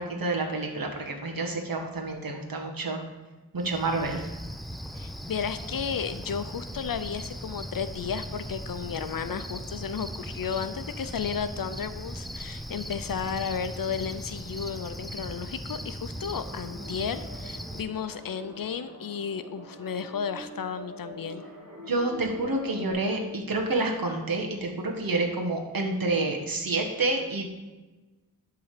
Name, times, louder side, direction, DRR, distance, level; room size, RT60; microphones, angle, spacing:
voice 1, 0.0-3.0 3.5-4.3 21.9-27.5, right 2 dB, 65° right, 1 dB, 1.6 m, -28 dB
Cricket, 3.6-17.8, equal, ahead, 0.4 m, -38 dB
voice 2, 4.9-21.4, left 7 dB, 65° left, 11 dB, 0.6 m, -33 dB
sound 1, 16.1-22.9, equal, 45° right, 2.3 m, -45 dB
11.0 x 3.8 x 6.7 m, 1.2 s
wide cardioid pair, 115°, 37 cm